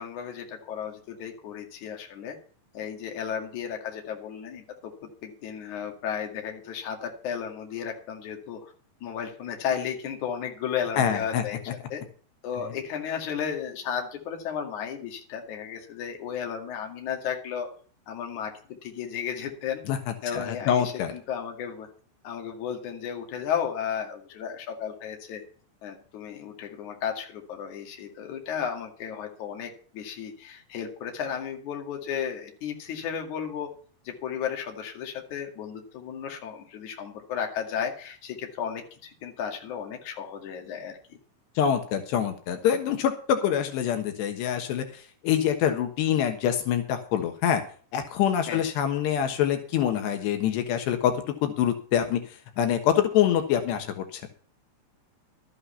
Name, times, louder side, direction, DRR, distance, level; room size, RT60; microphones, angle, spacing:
voice 1, 0.0-2.4 2.7-4.9 5.2-8.7 9.0-11.6 11.9-12.0 12.4-17.7 18.1-19.8 20.2-21.9 22.2-25.4 25.8-33.7 34.0-41.2 48.5-48.6, left 8 dB, 50° left, 3 dB, 3.2 m, -34 dB
voice 2, 11.0-11.4 19.9-20.0 20.3-21.1 41.6-47.6 47.9-54.2, left 9 dB, 80° left, 7 dB, 3.5 m, -25 dB
13.0 x 8.8 x 5.6 m, 0.43 s
omnidirectional pair, 4.9 m